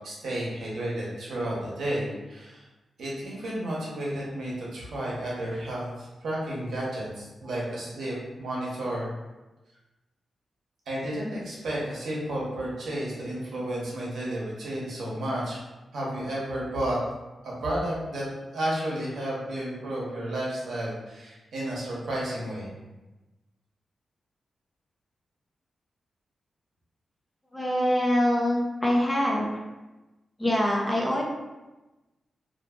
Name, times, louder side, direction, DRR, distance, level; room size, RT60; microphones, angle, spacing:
voice 1, 0.0-2.6 3.0-9.1 10.9-15.6 15.9-17.0 17.4-18.2 18.5-22.7, right 1 dB, 80° right, -5 dB, 0.8 m, -32 dB
voice 2, 27.5-29.4 30.4-31.2, left 1 dB, 15° left, -3 dB, 0.5 m, -24 dB
2.6 x 2.6 x 2.3 m, 1.1 s
wide cardioid pair, 130°, 0 cm